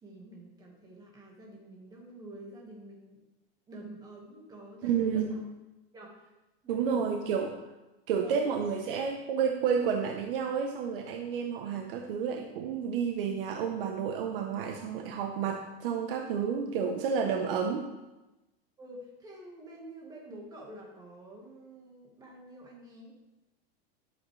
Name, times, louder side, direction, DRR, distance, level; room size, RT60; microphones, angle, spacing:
voice 1, 0.0-3.2 3.7-5.5 5.9-6.3 6.6-7.3 8.2-8.6 18.8-23.1, right 1 dB, 10° right, -1 dB, 1.5 m, -48 dB
voice 2, 4.8-5.4 6.7-7.6 8.1-17.9, right 6 dB, 65° right, 4 dB, 0.9 m, -30 dB
11.5 x 7.3 x 3.2 m, 1.0 s
supercardioid pair, 165°, 30 cm